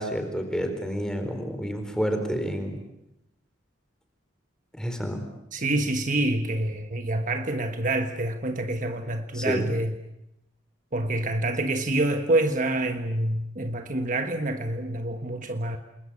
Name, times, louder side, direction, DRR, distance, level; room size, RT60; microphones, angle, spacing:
voice 1, 0.0-2.8 4.8-5.2 9.3-9.7, equal, 5° left, 4.2 m, -29 dB
voice 2, 5.5-10.0 10.9-15.8, right 1 dB, 40° right, 1.4 m, -27 dB
29.0 x 21.5 x 8.6 m
head